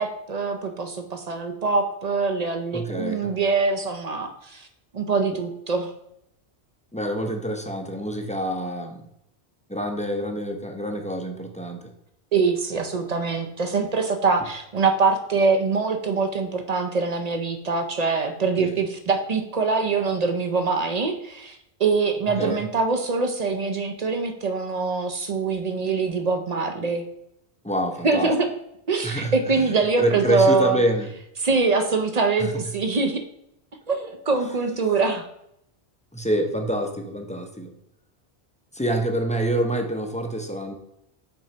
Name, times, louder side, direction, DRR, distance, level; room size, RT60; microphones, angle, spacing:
voice 1, 0.0-4.7 4.9-5.9 12.3-27.0 28.0-28.5 28.9-30.8 31.4-33.2 33.9-35.3, right 4 dB, 45° right, 5 dB, 0.6 m, -24 dB
voice 2, 2.7-3.3 6.9-9.1 9.7-11.9 18.6-18.8 22.4-22.7 27.6-28.3 29.0-29.6 30.0-31.1 32.4-32.7 36.1-37.7 38.7-40.7, right 1 dB, 10° left, 4 dB, 0.5 m, -27 dB
6.1 x 3.8 x 4.3 m, 0.77 s
omnidirectional pair, 1.1 m